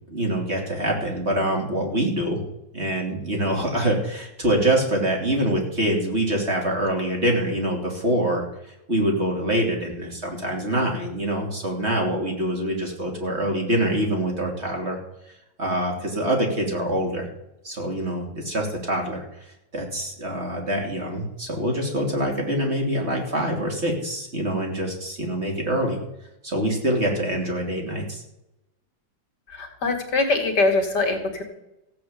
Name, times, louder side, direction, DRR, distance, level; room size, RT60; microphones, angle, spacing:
voice 1, 0.1-2.4 2.7-8.4 8.9-15.0 15.6-17.2 17.6-19.2 19.7-26.0 26.4-28.2, right 1 dB, 35° right, 0 dB, 3.2 m, -25 dB
voice 2, 29.5-31.4, left 3 dB, 60° left, 5 dB, 2.7 m, -23 dB
15.0 x 7.7 x 8.6 m, 0.90 s
omnidirectional pair, 2.1 m